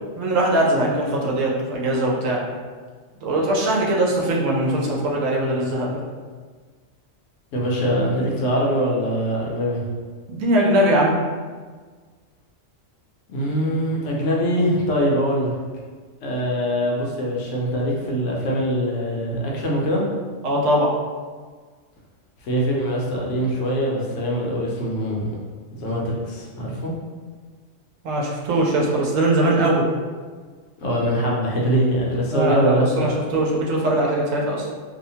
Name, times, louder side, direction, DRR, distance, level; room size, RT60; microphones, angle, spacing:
voice 1, 0.2-2.4 3.2-5.9 10.3-11.1 20.4-20.9 28.0-29.8 32.3-34.6, right 1 dB, 85° right, -2 dB, 1.0 m, -21 dB
voice 2, 7.5-9.9 13.3-15.5 16.2-20.0 22.4-25.3 25.8-26.9 30.8-33.2, equal, 70° left, -3 dB, 0.9 m, -23 dB
2.7 x 2.1 x 2.7 m, 1.5 s
omnidirectional pair, 1.3 m